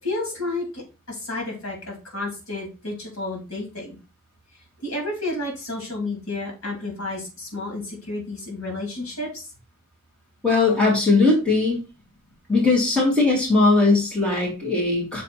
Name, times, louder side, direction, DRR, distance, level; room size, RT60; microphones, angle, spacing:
voice 1, 0.0-3.9 4.8-9.5, left 2 dB, 65° left, 0 dB, 3.2 m, -31 dB
voice 2, 10.4-11.8 12.5-15.2, left 3 dB, 5° left, -5 dB, 2.2 m, -19 dB
6.5 x 4.0 x 4.3 m, 0.30 s
head